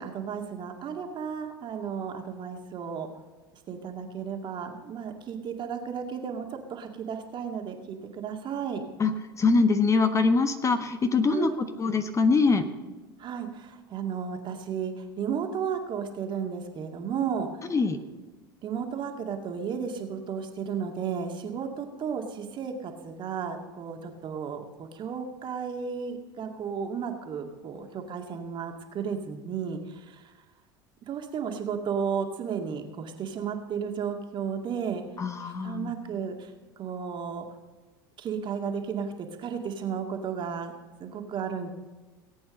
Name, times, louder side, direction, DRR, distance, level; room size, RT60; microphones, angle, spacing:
voice 1, 0.0-3.1 3.7-8.8 11.3-11.6 13.2-17.5 18.6-30.3 31.1-35.0 35.4-36.5 36.8-37.4 38.2-39.1 39.4-40.7 41.0-41.7, right 7 dB, 40° right, 3 dB, 2.3 m, -33 dB
voice 2, 9.0-12.6 17.7-18.0 35.2-35.9, left 4 dB, 25° left, 8 dB, 1.2 m, -24 dB
18.5 x 8.7 x 5.3 m, 1.3 s
hypercardioid pair, 80°, 12 cm